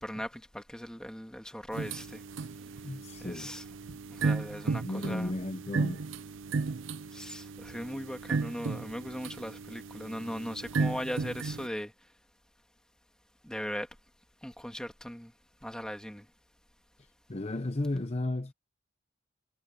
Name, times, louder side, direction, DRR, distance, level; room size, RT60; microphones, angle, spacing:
voice 1, 0.0-2.2 3.2-3.6 4.1-5.3 7.1-11.9 13.4-13.9 14.4-15.3 15.6-16.3, equal, 5° left, 2.0 m, -39 dB
sound 1, 1.7-11.7, right 4 dB, 60° right, 0.5 m, -35 dB
voice 2, 2.8-3.5 4.8-6.0 17.3-18.5, left 1 dB, 30° left, 0.7 m, -34 dB
head